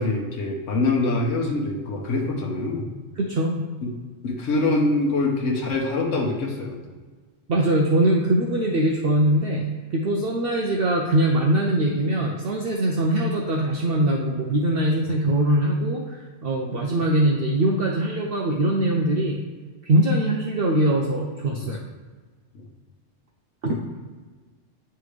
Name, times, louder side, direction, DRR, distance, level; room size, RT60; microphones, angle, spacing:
voice 1, 0.0-2.9 4.2-6.8 21.6-21.7 22.5-22.6, left 2 dB, 80° left, -1 dB, 1.3 m, -24 dB
voice 2, 3.2-3.6 7.5-9.6 9.9-19.4 19.9-21.8 23.6-23.8, right 1 dB, 55° right, -1 dB, 0.8 m, -22 dB
9.6 x 3.4 x 3.2 m, 1.4 s
omnidirectional pair, 1.3 m